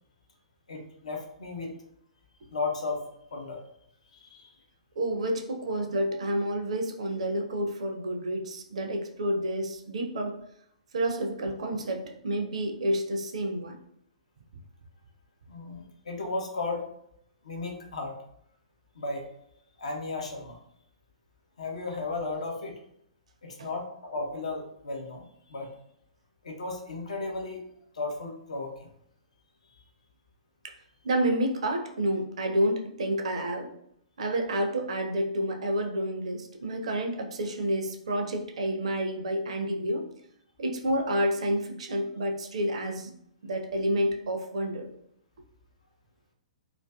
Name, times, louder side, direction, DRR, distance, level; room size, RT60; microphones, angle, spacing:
voice 1, 0.7-1.7 2.5-3.6 4.1-4.5 15.5-16.9 17.4-18.2 18.9-19.3 19.8-20.6 21.6-22.8 23.4-25.7 26.4-27.6 27.9-28.9, left 3 dB, 65° left, 2 dB, 0.6 m, -35 dB
voice 2, 5.0-10.4 10.9-13.8 23.6-23.7 30.6-30.8 31.0-33.7 34.2-40.0 40.6-43.1 43.4-44.9, right 1 dB, 60° right, 4 dB, 0.4 m, -29 dB
2.4 x 2.3 x 2.2 m, 0.73 s
figure-of-eight pair, 115°, 4 cm